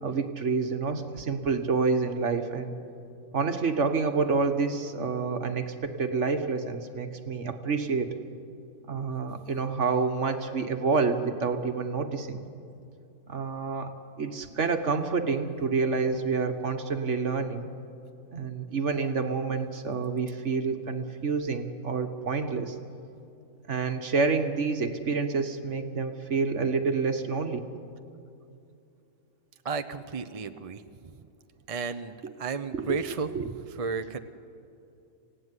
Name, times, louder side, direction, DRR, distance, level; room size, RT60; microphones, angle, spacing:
voice 1, 0.0-2.7 3.3-8.1 8.9-12.5 13.3-17.7 18.3-22.8 23.7-27.7 32.2-32.3 32.7-33.0 33.3-33.5, right 4 dB, 50° right, 7 dB, 1.6 m, -28 dB
voice 2, 29.6-30.8 31.7-34.2, right 5 dB, 35° right, 9 dB, 0.6 m, -33 dB
26.5 x 17.0 x 9.7 m, 2.6 s
omnidirectional pair, 1.6 m